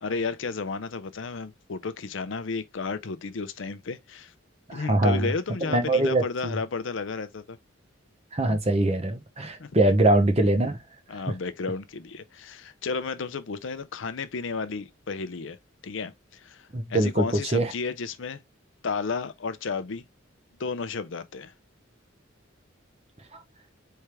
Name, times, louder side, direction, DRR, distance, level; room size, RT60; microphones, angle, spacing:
voice 1, 0.0-4.3 4.7-7.6 9.6-9.7 11.1-15.6 15.8-18.4 18.8-20.0 20.6-21.5, left 4 dB, 70° left, 0.6 m, -33 dB
voice 2, 4.7-5.3 5.7-6.6 8.3-10.8 16.7-17.2 17.5-17.7, right 1 dB, 30° right, 0.9 m, -23 dB
4.5 x 3.4 x 3.3 m
head